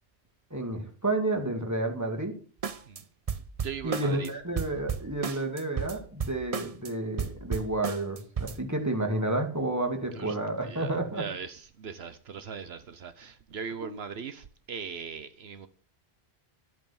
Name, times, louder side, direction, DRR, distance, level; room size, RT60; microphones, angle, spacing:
voice 1, 0.5-2.3 3.8-11.2 13.8-13.9, right 2 dB, 15° right, 2.5 m, -30 dB
sound 1, 2.6-3.0 3.3-4.3 4.6-6.9 7.2-8.6, right 6 dB, 40° right, 0.8 m, -33 dB
voice 2, 3.6-4.3 5.2-5.4 10.1-15.7, right 6 dB, 75° right, 1.2 m, -40 dB
13.0 x 8.9 x 7.1 m
omnidirectional pair, 1.1 m